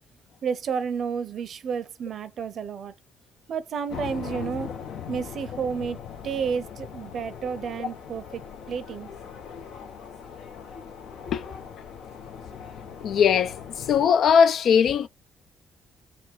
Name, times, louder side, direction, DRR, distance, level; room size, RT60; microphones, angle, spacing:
voice 1, 0.4-2.9 3.5-4.7 5.1-9.1, right 6 dB, 60° right, 0.7 m, -31 dB
sound 1, 3.9-14.1, left 7 dB, 85° left, 1.1 m, -40 dB
voice 2, 13.0-13.5 13.9-15.1, left 7 dB, 70° left, 0.4 m, -19 dB
4.3 x 2.4 x 4.5 m
cardioid pair, 90°, 0 cm